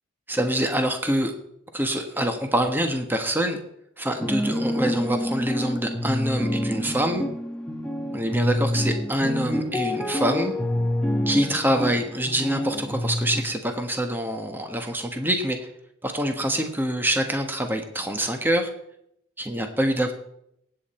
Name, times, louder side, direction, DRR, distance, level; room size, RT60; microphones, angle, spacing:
voice 1, 0.3-1.3 1.7-3.6 4.0-7.2 8.1-10.5 11.3-15.7 16.0-18.7 19.4-20.1, right 1 dB, 10° right, 5 dB, 1.3 m, -25 dB
sound 1, 4.2-13.4, left 1 dB, 5° left, 1.4 m, -27 dB
18.0 x 8.9 x 4.4 m, 0.74 s
head